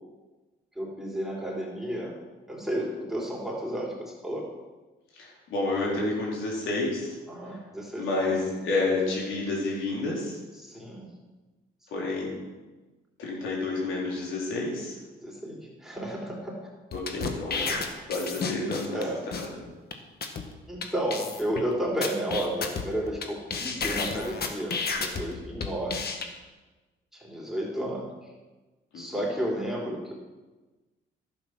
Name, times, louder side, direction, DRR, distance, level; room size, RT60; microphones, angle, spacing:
voice 1, 0.8-2.2 2.5-4.5 7.3-8.4 10.6-11.1 15.2-16.7 17.5-18.1 18.9-19.2 20.7-26.0 27.1-28.1 28.9-30.1, right 1 dB, ahead, -3 dB, 3.8 m, -32 dB
voice 2, 5.1-7.2 7.4-7.6 8.0-10.4 11.9-12.4 13.2-15.0 16.9-17.7 18.1-19.0 19.3-19.5 28.9-29.2, left 2 dB, 80° left, -3 dB, 4.1 m, -30 dB
sound 1, 16.9-19.0 19.3-19.5 19.9-20.0 20.2-20.4 20.8-20.9 21.1-21.6 22.0-23.2 23.5-25.2 25.6-26.2, left 5 dB, 50° left, 1.6 m, -31 dB
11.5 x 8.9 x 6.0 m, 1.2 s
cardioid pair, 90°, 20 cm